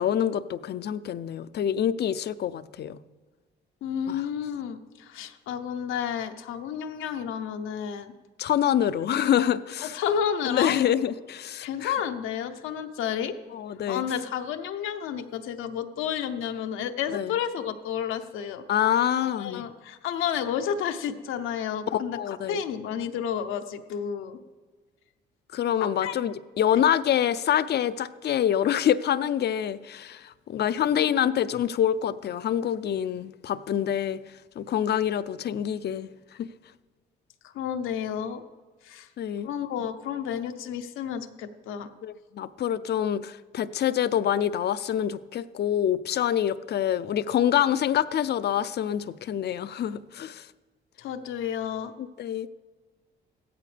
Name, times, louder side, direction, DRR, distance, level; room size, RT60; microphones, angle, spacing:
voice 1, 0.0-3.0 4.1-4.2 8.4-10.0 10.4-11.9 13.5-14.0 17.1-17.3 18.7-19.6 21.9-22.6 25.5-34.2 34.6-36.1 36.4-36.5 39.2-39.5 42.0-50.5 52.0-52.5, left 10 dB, 55° left, 14 dB, 0.5 m, -26 dB
voice 2, 3.8-8.1 9.8-10.8 11.6-13.4 13.9-18.6 19.2-22.2 22.5-24.4 25.8-26.2 26.7-26.8 30.8-31.3 37.4-38.4 38.8-39.1 39.4-41.9 51.0-51.9, left 8 dB, 90° left, 7 dB, 0.8 m, -31 dB
15.5 x 13.5 x 3.4 m, 1.3 s
cardioid pair, 90°, 20 cm